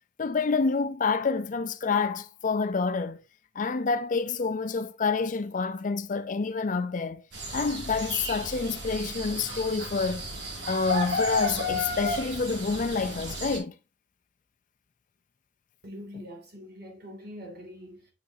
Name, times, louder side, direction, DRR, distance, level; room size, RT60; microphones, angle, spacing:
voice 1, 0.2-3.2 3.6-7.2 7.5-10.3 10.7-13.7, left 4 dB, 45° left, 0.5 m, -28 dB
sound 1, 7.3-13.6, left 1 dB, 80° right, 2.3 m, -33 dB
voice 2, 15.8-18.1, equal, 60° right, 2.5 m, -44 dB
6.8 x 6.3 x 2.7 m
head